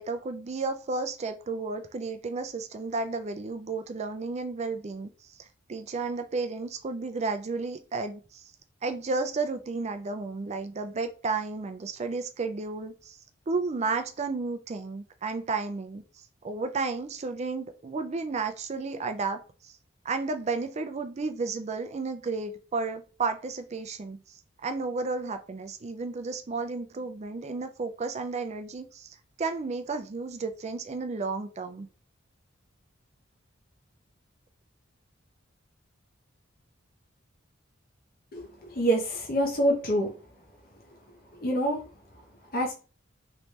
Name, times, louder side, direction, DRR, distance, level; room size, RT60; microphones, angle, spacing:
voice 1, 0.0-5.1 5.7-8.4 8.8-13.2 13.5-16.0 16.4-19.7 20.0-24.2 24.6-31.9, right 4 dB, 35° right, 8 dB, 0.4 m, -32 dB
voice 2, 38.3-40.1 41.3-41.8 42.5-42.7, right 1 dB, 50° left, 0 dB, 0.8 m, -26 dB
3.2 x 3.1 x 2.8 m, 0.36 s
head